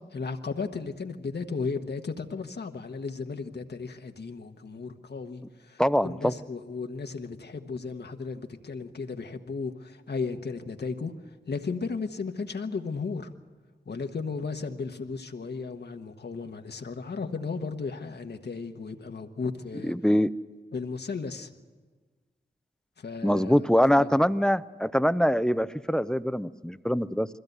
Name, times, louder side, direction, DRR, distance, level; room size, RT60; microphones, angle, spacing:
voice 1, 0.0-11.1 11.5-13.3 13.9-19.9 20.7-21.5 23.0-23.7 24.0-24.2, left 4 dB, 65° left, 6 dB, 1.3 m, -35 dB
voice 2, 5.8-6.3 19.8-20.3 23.2-27.3, equal, 5° left, 14 dB, 0.6 m, -23 dB
21.5 x 16.0 x 8.0 m, 1.4 s
cardioid pair, 45°, 18 cm